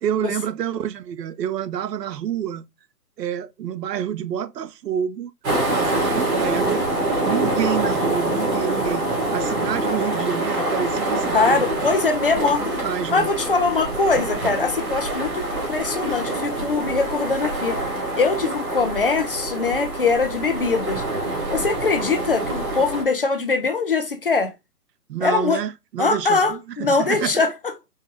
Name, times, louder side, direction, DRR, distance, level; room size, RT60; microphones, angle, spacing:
voice 1, 0.0-2.6 3.2-5.3 5.7-6.9 7.2-11.7 12.3-13.3 25.1-27.4, right 9 dB, 85° right, 0.6 m, -28 dB
sound 1, 5.4-23.0, right 2 dB, 60° right, 2.1 m, -25 dB
voice 2, 11.3-12.8 13.1-17.8 18.2-21.0 21.5-24.5 25.2-25.6 26.0-27.5, left 4 dB, 40° left, 0.4 m, -22 dB
4.5 x 2.2 x 3.0 m
hypercardioid pair, 145°, 47 cm